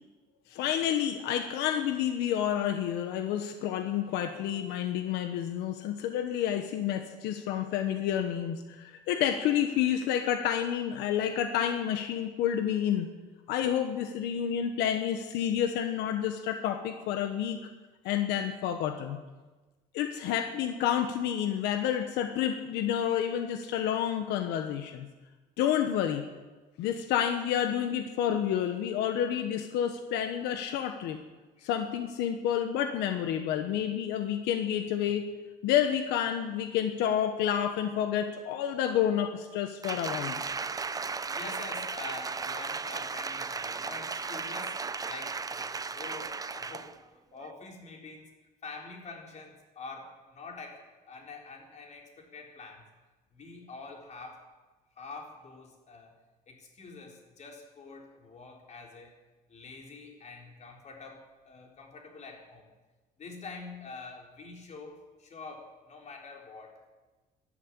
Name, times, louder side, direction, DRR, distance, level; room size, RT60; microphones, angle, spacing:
voice 1, 0.5-13.1 13.5-17.6 18.0-19.2 19.9-25.1 25.6-26.2 26.8-31.2 31.6-35.2 35.6-40.4, left 9 dB, 90° left, 7 dB, 1.2 m, -29 dB
Applause, 39.8-47.0 47.4-47.5, right 4 dB, 20° right, 0.7 m, -35 dB
voice 2, 41.3-45.7 45.9-47.0 47.3-48.3 48.6-52.9 53.3-54.5 55.0-56.2 56.5-59.1 59.5-62.7 63.2-66.7, left 3 dB, 45° left, 1 dB, 4.1 m, -46 dB
12.5 x 12.0 x 8.7 m, 1.2 s
cardioid pair, 110°, 17 cm